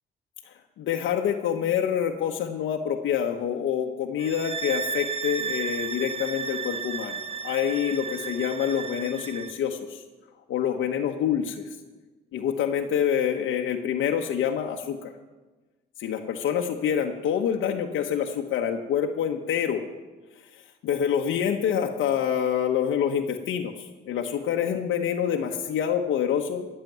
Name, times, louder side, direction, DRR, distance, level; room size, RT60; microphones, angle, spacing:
voice 1, 0.5-10.0 10.5-11.7 12.3-15.1 16.0-19.8 20.5-26.7, left 8 dB, 80° left, 2 dB, 1.0 m, -27 dB
sound 1, 4.2-9.6, right 6 dB, 30° right, 0.8 m, -33 dB
15.0 x 6.8 x 9.1 m, 1.2 s
cardioid pair, 90°, 20 cm